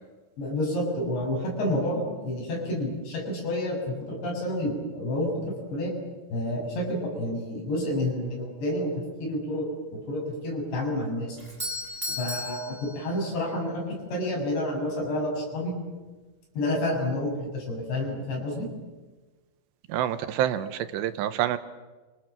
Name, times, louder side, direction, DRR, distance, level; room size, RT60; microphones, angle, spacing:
voice 1, 0.4-5.9 6.3-8.9 9.2-11.4 12.2-15.8 16.5-18.7, left 1 dB, 75° left, -1 dB, 9.8 m, -29 dB
Doorbell, 11.4-13.5, left 1 dB, 10° right, 5.9 m, -35 dB
voice 2, 19.9-21.6, right 11 dB, 75° right, 11 dB, 3.2 m, -27 dB
29.5 x 26.5 x 7.5 m, 1.3 s
omnidirectional pair, 5.1 m